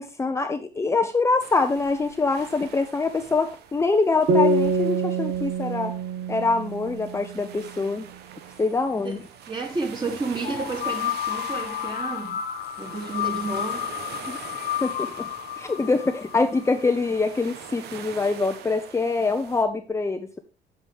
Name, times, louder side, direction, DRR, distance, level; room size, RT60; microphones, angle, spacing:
voice 1, 0.0-5.9 6.3-8.1 8.6-9.2 14.3-14.4 14.8-15.3 15.6-20.4, left 3 dB, 15° left, 0.7 m, -24 dB
sound 1, 1.4-19.6, right 8 dB, 75° right, 1.1 m, -44 dB
sound 2, 4.3-7.7, right 2 dB, 55° right, 1.2 m, -25 dB
voice 2, 9.5-12.4 12.8-13.9, right 3 dB, 25° right, 2.9 m, -31 dB
sound 3, 10.4-17.2, left 11 dB, 60° left, 1.0 m, -31 dB
8.2 x 8.1 x 3.5 m
cardioid pair, 110°, 17 cm